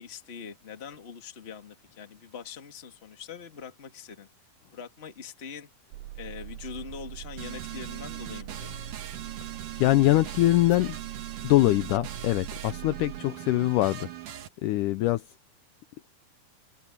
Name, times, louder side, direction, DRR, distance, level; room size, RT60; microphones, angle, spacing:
voice 1, 0.0-4.3 4.7-5.7 6.1-8.7, left 6 dB, 25° left, 1.4 m, -43 dB
sound 1, 5.9-13.2, right 15 dB, 90° right, 2.5 m, -42 dB
sound 2, 7.4-14.5, right 10 dB, 65° right, 3.1 m, -40 dB
voice 2, 9.8-11.0 11.4-14.1 14.6-15.2, left 16 dB, 75° left, 1.9 m, -23 dB
open air
omnidirectional pair, 4.1 m